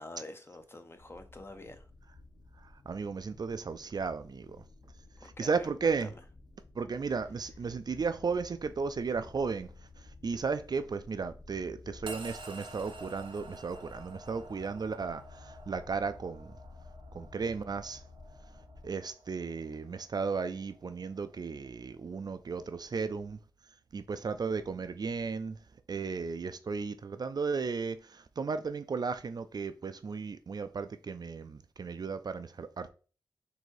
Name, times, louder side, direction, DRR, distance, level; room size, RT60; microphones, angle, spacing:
voice 1, 0.0-1.9 5.2-6.1, left 2 dB, 25° left, 0.7 m, -47 dB
sound 1, 0.9-18.9, left 3 dB, 60° left, 1.0 m, -53 dB
voice 2, 2.6-4.6 5.2-6.1 6.8-9.7 10.0-16.5 17.1-18.0 18.8-23.4 23.9-25.6 25.9-32.9, right 5 dB, 50° right, 0.4 m, -35 dB
sound 2, 12.1-22.4, right 2 dB, 70° right, 0.7 m, -51 dB
4.0 x 2.7 x 4.6 m
wide cardioid pair, 75°, 9 cm